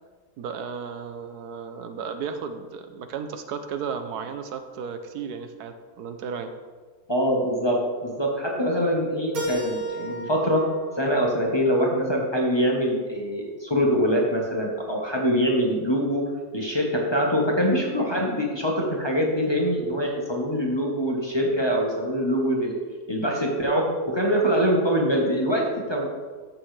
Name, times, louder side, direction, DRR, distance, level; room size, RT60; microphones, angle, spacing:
voice 1, 0.4-6.5, right 6 dB, 80° right, 8 dB, 1.3 m, -34 dB
voice 2, 7.1-10.6 11.0-16.3 16.5-22.7 23.1-26.1, equal, 20° left, -2 dB, 1.2 m, -24 dB
Keyboard (musical), 9.3-12.2, right 1 dB, 65° right, 1.9 m, -34 dB
14.5 x 6.2 x 3.3 m, 1.5 s
omnidirectional pair, 1.7 m